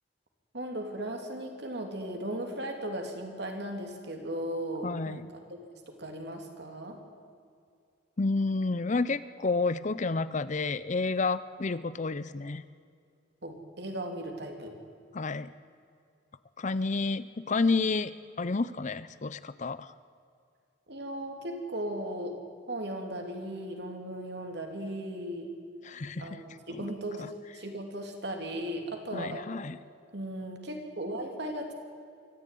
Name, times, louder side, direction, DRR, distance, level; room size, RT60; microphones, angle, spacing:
voice 1, 0.5-5.4 5.9-7.0 13.4-14.8 20.9-22.4 22.7-25.5 26.2-29.5 30.1-31.7, right 1 dB, 60° right, 3 dB, 3.1 m, -37 dB
voice 2, 4.8-5.3 8.2-12.6 15.1-15.5 16.6-19.9 25.8-26.4 26.8-26.9 27.2-27.3 29.1-29.8, left 3 dB, 40° left, 15 dB, 0.6 m, -30 dB
24.0 x 14.5 x 9.3 m, 2.3 s
head